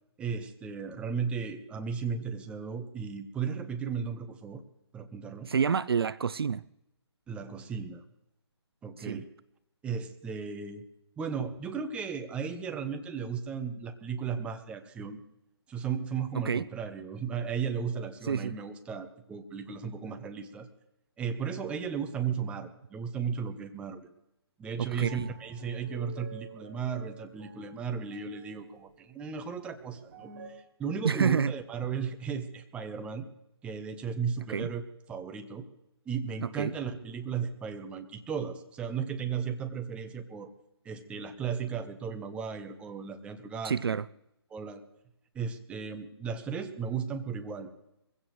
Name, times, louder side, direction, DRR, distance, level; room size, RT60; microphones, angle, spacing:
voice 1, 0.2-4.6 4.9-5.5 7.3-8.0 8.8-9.3 9.8-10.9 11.2-15.2 15.7-20.7 21.2-24.1 24.6-33.3 33.6-34.8 35.1-35.6 36.1-40.5 40.8-44.0 44.5-44.8 45.3-47.7, right 6 dB, 10° right, 0.9 m, -35 dB
voice 2, 5.5-6.6 9.0-9.2 16.3-16.6 18.2-18.6 24.8-25.3 31.0-31.5 34.5-34.7 36.4-36.7 43.6-44.1, right 6 dB, 60° right, 0.4 m, -28 dB
sound 1, 24.8-30.5, right 6 dB, 40° right, 4.9 m, -50 dB
22.0 x 16.0 x 3.2 m
figure-of-eight pair, 145°, 14 cm